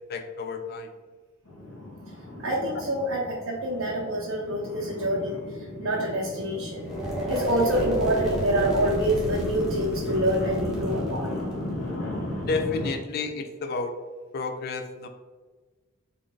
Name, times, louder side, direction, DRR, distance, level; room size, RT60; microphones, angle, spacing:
voice 1, 0.1-0.9 12.5-14.0 14.3-15.1, left 4 dB, 45° left, 6 dB, 0.3 m, -31 dB
sound 1, 1.5-12.9, left 1 dB, 75° left, 1.1 m, -35 dB
voice 2, 2.4-6.9 7.3-11.4, right 1 dB, 75° right, -5 dB, 0.7 m, -27 dB
sound 2, 6.8-12.8, right 1 dB, ahead, 0.7 m, -33 dB
3.7 x 2.4 x 3.7 m, 1.3 s
head